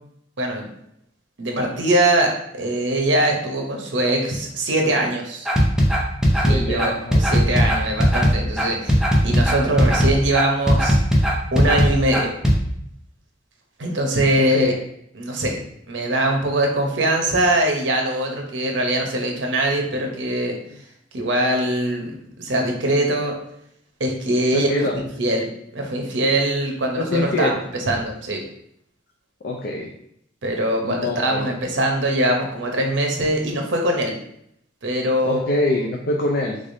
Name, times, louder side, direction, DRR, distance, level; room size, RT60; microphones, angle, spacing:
voice 1, 0.4-0.7 1.4-5.5 6.5-6.9 7.2-9.0 9.2-11.0 11.5-12.3 13.8-14.7 15.1-15.6 15.9-20.6 21.1-22.1 22.4-23.3 24.0-24.9 25.2-25.5 25.7-27.5 27.9-28.4 30.4-34.2 34.8-35.4, right 1 dB, 85° right, 2 dB, 0.8 m, -22 dB
sound 1, 5.4-12.6, equal, 5° right, 0.6 m, -17 dB
voice 2, 6.3-7.4 14.4-14.8 24.5-24.9 27.0-27.6 29.4-29.9 30.8-31.5 35.2-36.6, left 2 dB, 60° left, 0 dB, 0.4 m, -24 dB
3.7 x 3.3 x 2.6 m, 0.74 s
head